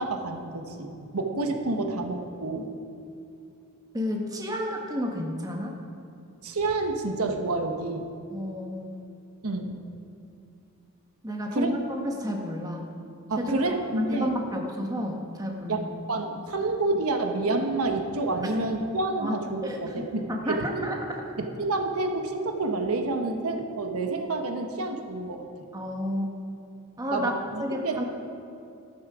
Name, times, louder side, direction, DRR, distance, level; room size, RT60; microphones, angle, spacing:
voice 1, 0.0-2.7 6.4-8.1 9.4-9.8 11.5-11.7 13.3-14.3 15.7-15.8 16.1-20.9 21.4-25.4 27.1-28.0, right 2 dB, 80° right, 4 dB, 1.2 m, -29 dB
voice 2, 3.9-5.7 8.3-8.9 11.2-12.9 13.4-15.9 16.5-16.6 19.2-19.3 19.6-20.0 20.4-21.2 25.7-26.3 27.0-28.0, equal, 15° right, 1 dB, 1.4 m, -31 dB
14.0 x 12.5 x 4.9 m, 2.6 s
head